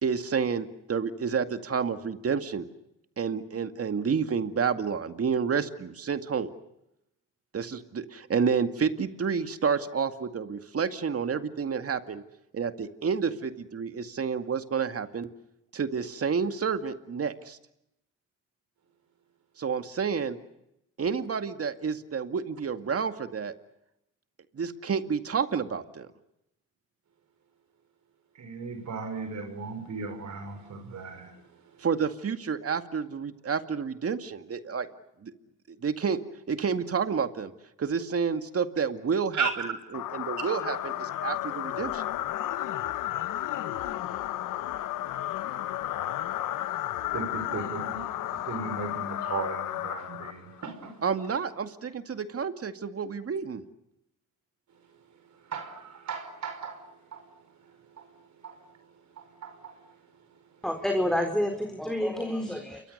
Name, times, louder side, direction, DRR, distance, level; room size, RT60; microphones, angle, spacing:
voice 1, 0.0-2.7 3.2-6.5 7.5-12.2 12.5-15.3 15.7-17.6 19.6-20.4 21.0-23.5 24.5-26.1 31.8-34.9 35.2-35.3 35.8-36.2 36.5-37.5 37.8-42.0 51.0-53.6, right 6 dB, 50° right, 8 dB, 2.2 m, -29 dB
voice 2, 28.4-31.3 39.3-39.5 47.1-51.0 55.5-56.8 57.1-57.2 58.0-58.1 58.4-58.6 59.2-59.7, right 5 dB, 65° right, 8 dB, 5.4 m, -36 dB
sound 1, 39.9-50.7, left 13 dB, 85° left, 1.3 m, -33 dB
voice 3, 60.6-62.8, left 1 dB, ahead, 5 dB, 4.2 m, -28 dB
28.5 x 24.0 x 6.7 m, 0.84 s
cardioid pair, 70°, 31 cm